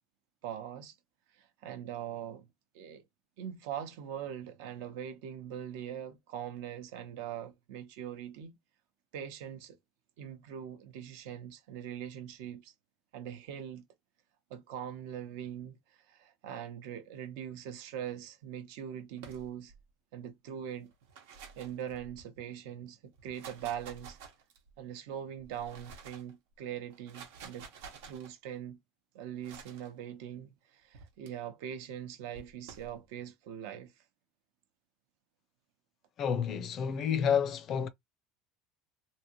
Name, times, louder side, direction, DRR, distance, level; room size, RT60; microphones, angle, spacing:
voice 1, 0.4-1.0 1.3-2.5 2.7-3.0 3.4-8.6 9.1-9.8 10.2-12.7 13.1-13.9 14.5-19.7 20.1-20.9 21.3-24.2 24.8-27.7 28.0-28.8 29.1-33.9, right 9 dB, 70° right, 0.9 m, -42 dB
sound 1, 19.2-19.8 20.9-22.4 23.1-24.8 25.4-26.3 26.9-28.3 29.4-29.9 30.9-31.3 32.3-32.9, right 5 dB, 85° right, 1.2 m, -51 dB
voice 2, 36.2-37.9, left 7 dB, 35° left, 0.4 m, -29 dB
3.2 x 2.8 x 2.9 m
cardioid pair, 165°, 0 cm